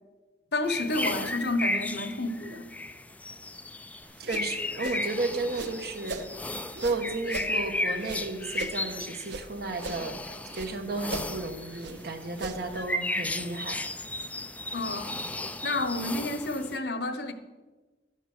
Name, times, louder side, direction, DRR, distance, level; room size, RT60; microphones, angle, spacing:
voice 1, 0.5-2.7 14.7-15.2 15.6-17.3, left 2 dB, 65° left, 1.0 m, -30 dB
sound 1, 0.6-16.8, left 1 dB, 10° left, 0.4 m, -35 dB
sound 2, 4.0-6.3 6.7-9.5 9.7-10.7 11.0-12.8, right 2 dB, 85° right, 0.9 m, -40 dB
voice 2, 4.2-6.3 6.8-13.9, right 2 dB, 60° right, 1.3 m, -33 dB
12.5 x 8.1 x 6.1 m
head